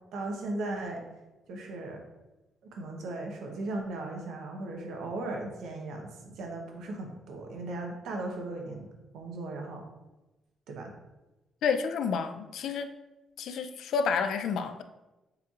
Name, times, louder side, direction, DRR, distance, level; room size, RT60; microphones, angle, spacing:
voice 1, 0.1-1.0 1.5-2.0 2.7-8.9 9.1-9.8 10.7-10.9, right 2 dB, 80° right, 1 dB, 0.8 m, -37 dB
voice 2, 11.6-12.9 13.4-14.8, left 6 dB, 65° left, 8 dB, 0.3 m, -29 dB
6.6 x 3.0 x 2.4 m, 1.1 s
cardioid pair, 175°, 0 cm